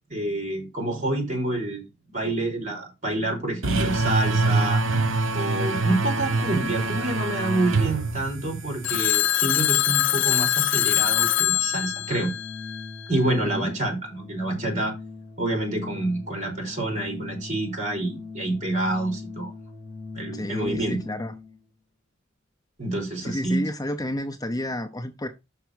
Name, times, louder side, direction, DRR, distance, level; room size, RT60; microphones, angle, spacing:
voice 1, 0.1-1.8 2.1-4.8 5.3-12.3 13.1-14.9 15.4-19.5 20.1-21.0 22.8-23.7, right 1 dB, 40° right, 4.2 m, -27 dB
sound 1, 3.6-9.0, right 3 dB, 85° right, 1.0 m, -25 dB
Telephone, 8.8-13.1, left 13 dB, 70° left, 0.4 m, -23 dB
Organ, 11.3-21.6, left 3 dB, 15° right, 2.2 m, -40 dB
voice 2, 20.3-21.3 23.2-25.3, left 1 dB, 20° left, 0.6 m, -30 dB
5.8 x 5.8 x 6.2 m
head